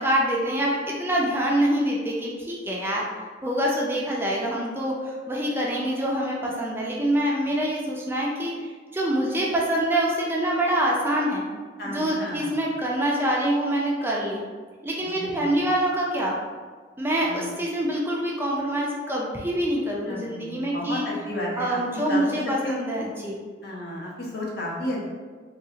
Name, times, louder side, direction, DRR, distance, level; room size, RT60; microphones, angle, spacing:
voice 1, 0.0-3.0 3.4-11.5 11.8-14.4 14.8-16.4 17.0-21.0 21.6-23.4, right 1 dB, 15° right, -3 dB, 0.4 m, -25 dB
voice 2, 11.8-12.6 15.1-15.6 17.2-17.5 20.1-22.8 23.6-25.0, left 1 dB, 65° left, -4 dB, 0.8 m, -33 dB
3.6 x 2.4 x 2.8 m, 1.5 s
head